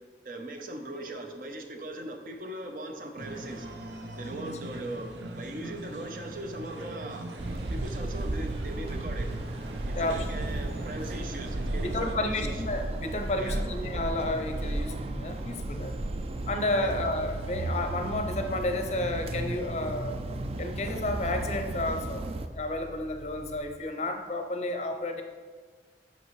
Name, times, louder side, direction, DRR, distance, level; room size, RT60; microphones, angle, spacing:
voice 1, 0.2-3.7 4.2-9.3 9.9-12.6 13.4-13.7 16.8-16.9, right 1 dB, 50° right, 4 dB, 0.7 m, -40 dB
sound 1, 3.2-12.2, right 1 dB, 85° right, 0.6 m, -41 dB
sound 2, 7.4-22.5, right 2 dB, 35° right, 0.3 m, -34 dB
voice 2, 9.9-10.2 11.8-16.0 16.5-20.2 20.6-22.2 22.5-25.2, left 2 dB, 40° left, 6 dB, 0.6 m, -31 dB
sound 3, 10.0-23.6, equal, 15° right, 2.0 m, -45 dB
8.3 x 5.2 x 3.2 m, 1.5 s
head